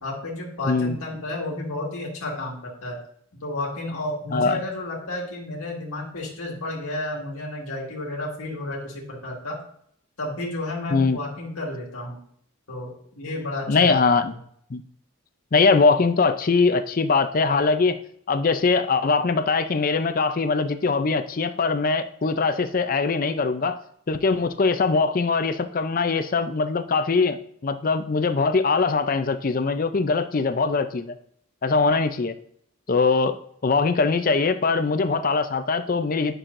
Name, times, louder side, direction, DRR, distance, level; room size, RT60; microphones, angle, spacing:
voice 1, 0.0-3.0 3.3-9.6 10.2-12.2 12.7-14.4, left 2 dB, 85° left, -3 dB, 1.8 m, -32 dB
voice 2, 0.6-1.0 4.3-4.6 10.9-11.2 13.7-14.3 14.7-14.8 15.5-18.0 18.3-23.8 24.1-31.1 31.6-32.3 32.9-33.3 33.6-36.4, left 4 dB, 40° left, 10 dB, 0.4 m, -22 dB
10.0 x 6.2 x 2.6 m, 0.66 s
head